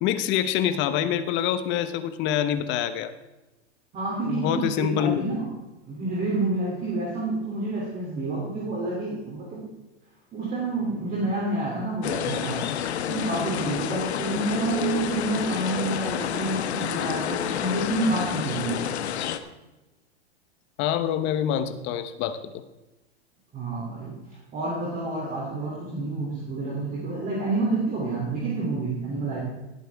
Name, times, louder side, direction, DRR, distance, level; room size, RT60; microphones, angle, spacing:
voice 1, 0.0-3.1 4.2-5.3 20.8-22.4, left 10 dB, 35° left, 11 dB, 1.0 m, -26 dB
voice 2, 3.9-5.5 5.9-9.7 10.3-12.6 13.1-18.8 23.5-24.2 24.5-29.4, right 2 dB, 25° right, -4 dB, 3.0 m, -28 dB
sound 1, 12.0-19.4, left 9 dB, 80° left, 1.1 m, -29 dB
18.0 x 8.6 x 3.6 m, 1.1 s
hypercardioid pair, 135°, 33 cm